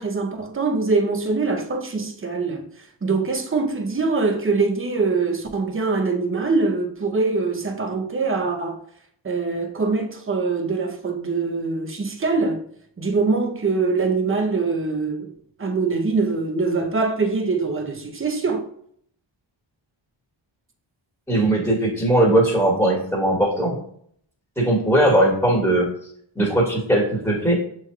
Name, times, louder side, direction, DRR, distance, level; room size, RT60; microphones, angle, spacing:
voice 1, 0.0-2.6 3.0-8.8 9.2-12.6 13.0-15.3 15.6-18.6, right 4 dB, 25° right, 0.7 m, -23 dB
voice 2, 21.3-23.8 24.6-25.9 26.3-27.6, right 1 dB, 5° left, 1.6 m, -19 dB
6.4 x 3.1 x 2.3 m
cardioid pair, 75°, 49 cm